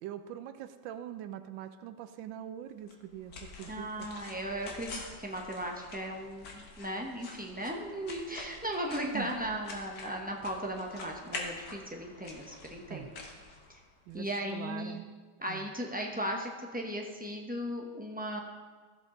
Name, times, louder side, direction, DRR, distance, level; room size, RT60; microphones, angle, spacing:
voice 1, 0.0-4.1 9.1-9.3 12.9-13.1 14.1-15.1 15.5-15.7, right 11 dB, 85° right, 10 dB, 1.3 m, -43 dB
sound 1, 2.9-14.2, left 3 dB, 65° left, 1.9 m, -47 dB
voice 2, 3.7-13.1 14.1-15.0 15.4-18.4, equal, 15° right, 0 dB, 0.3 m, -37 dB
14.5 x 7.5 x 3.8 m, 1.5 s
omnidirectional pair, 2.0 m